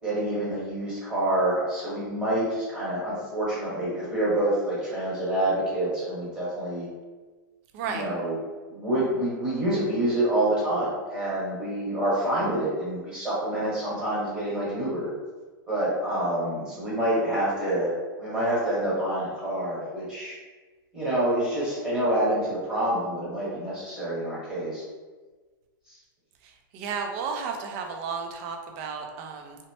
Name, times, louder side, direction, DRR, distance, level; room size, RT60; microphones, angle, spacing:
voice 1, 0.0-6.9 7.8-8.4 8.7-15.1 15.7-20.4 20.9-24.8, right 1 dB, 5° right, -9 dB, 1.1 m, -27 dB
voice 2, 7.7-8.1 26.7-29.6, right 5 dB, 40° right, 3 dB, 0.4 m, -33 dB
2.9 x 2.0 x 3.0 m, 1.3 s
hypercardioid pair, 145°, 11 cm